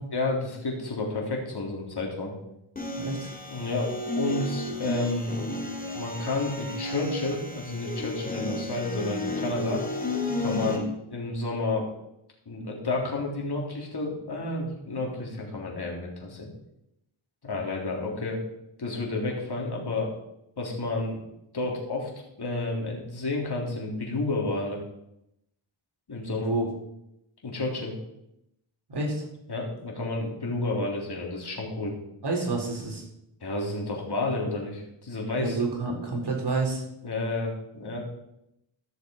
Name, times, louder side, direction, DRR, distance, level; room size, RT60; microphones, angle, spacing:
voice 1, 0.1-2.4 3.5-5.5 5.9-9.8 10.4-11.9 12.5-16.5 17.4-18.4 18.8-20.1 20.6-21.2 21.5-22.1 22.4-24.8 26.1-26.5 27.4-27.9 29.5-31.9 33.4-35.6 37.0-38.0, left 2 dB, 50° left, -1 dB, 3.6 m, -31 dB
sound 1, 2.8-10.8, left 1 dB, 15° left, 2.5 m, -32 dB
voice 2, 3.0-3.3 26.4-26.7 28.9-29.3 32.2-33.1 35.4-36.8, right 3 dB, 55° right, 0 dB, 4.0 m, -29 dB
14.5 x 6.6 x 5.3 m, 0.82 s
cardioid pair, 70°, 49 cm